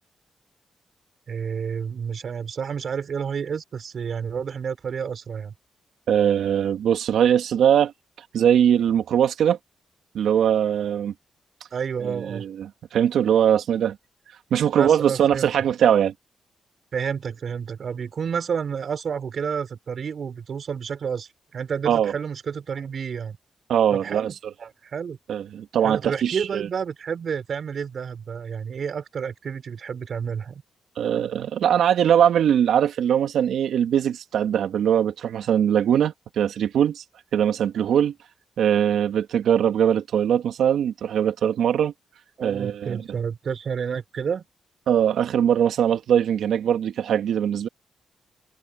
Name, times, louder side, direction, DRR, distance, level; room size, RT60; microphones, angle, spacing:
voice 1, 1.3-5.5 11.7-12.4 14.7-15.5 16.9-23.4 23.9-25.2 25.8-30.6 42.4-44.5, right 7 dB, 60° right, 5.9 m, -30 dB
voice 2, 6.1-7.9 8.3-9.6 10.1-11.1 12.0-14.0 14.5-16.1 21.9-22.1 23.7-24.3 25.3-26.7 31.0-37.0 37.3-38.1 38.6-41.9 42.4-43.0 44.9-47.7, right 9 dB, 80° right, 2.3 m, -21 dB
cardioid pair, 65°, 0 cm